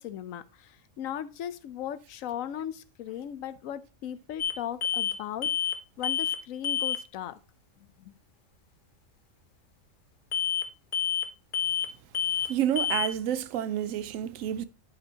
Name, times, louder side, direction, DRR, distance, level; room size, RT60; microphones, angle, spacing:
voice 1, 0.0-5.7 6.0-7.4 7.8-8.1, left 10 dB, 90° left, 1.1 m, -37 dB
sound 1, 4.4-4.5 4.8-5.2 5.4-5.8 6.0-6.4 6.6-7.0 10.3-10.7 10.9-11.3 11.5-11.9 12.1-12.5 12.8-13.1, left 8 dB, 45° left, 0.8 m, -28 dB
voice 2, 12.4-14.6, right 10 dB, 90° right, 1.0 m, -29 dB
10.5 x 5.1 x 2.8 m
omnidirectional pair, 1.3 m